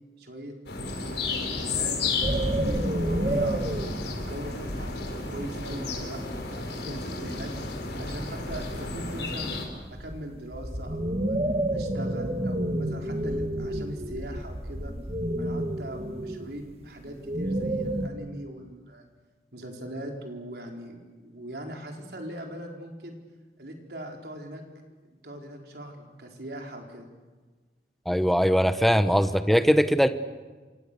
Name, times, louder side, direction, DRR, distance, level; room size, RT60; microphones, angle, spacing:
voice 1, 0.2-3.6 4.0-7.5 8.0-9.6 9.9-11.4 11.7-14.9 15.4-19.1 19.5-23.2 23.6-24.6 25.2-27.1, right 1 dB, 65° right, 2 dB, 4.4 m, -40 dB
sound 1, 0.7-9.7, left 3 dB, 80° left, 5.0 m, -32 dB
sound 2, 2.2-4.1 7.4-7.5 9.5-18.1, right 1 dB, 35° right, 1.9 m, -29 dB
voice 2, 28.1-30.1, equal, ahead, 10 dB, 1.0 m, -21 dB
28.0 x 26.5 x 6.9 m, 1.4 s
head